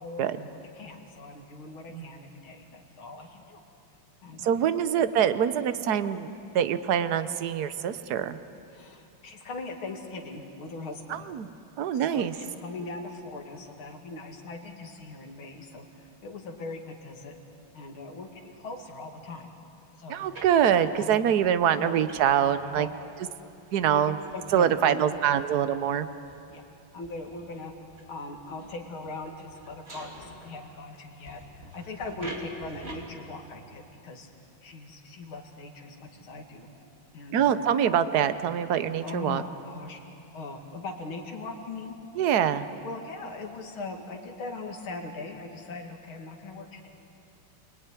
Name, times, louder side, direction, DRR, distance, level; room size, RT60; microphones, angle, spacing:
voice 1, 0.0-3.6 4.2-4.7 8.7-11.2 12.1-17.3 17.7-19.5 20.0-20.3 20.9-21.2 21.8-21.9 22.8-22.9 23.9-25.4 26.5-26.6 26.9-27.7 28.1-34.3 34.6-36.7 37.1-37.6 39.0-40.0 40.3-42.0 42.8-46.9, left 3 dB, 75° left, 2 dB, 3.2 m, -40 dB
voice 2, 4.4-6.3 6.5-8.4 11.1-11.5 11.8-12.3 20.1-22.9 23.7-24.2 24.5-26.1 37.3-39.4 42.1-42.6, right 9 dB, 55° right, 12 dB, 1.3 m, -24 dB
sound 1, 20.2-30.8 31.3-33.0, right 1 dB, 30° right, 3.3 m, -47 dB
28.5 x 21.0 x 9.9 m, 2.7 s
omnidirectional pair, 2.3 m